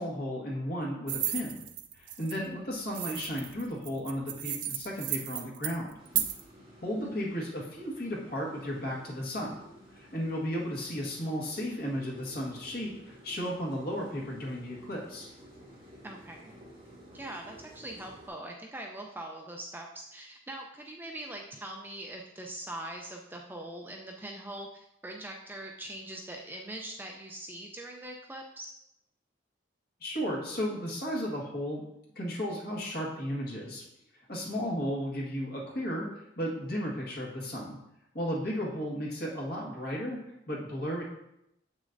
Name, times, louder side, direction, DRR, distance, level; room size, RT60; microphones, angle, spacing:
voice 1, 0.0-1.6 2.0-6.0 6.8-9.6 9.9-15.3 30.0-31.8 32.1-33.8 34.3-37.8 38.1-41.0, equal, 50° left, -4 dB, 1.6 m, -34 dB
sound 1, 1.1-2.4 2.9-6.4, right 11 dB, 70° right, 0.5 m, -34 dB
sound 2, 5.9-18.3, equal, 25° right, 2.7 m, -53 dB
voice 2, 16.0-16.5 17.1-28.7, right 1 dB, 10° right, 1 dB, 0.4 m, -42 dB
7.3 x 6.3 x 2.6 m, 0.81 s
head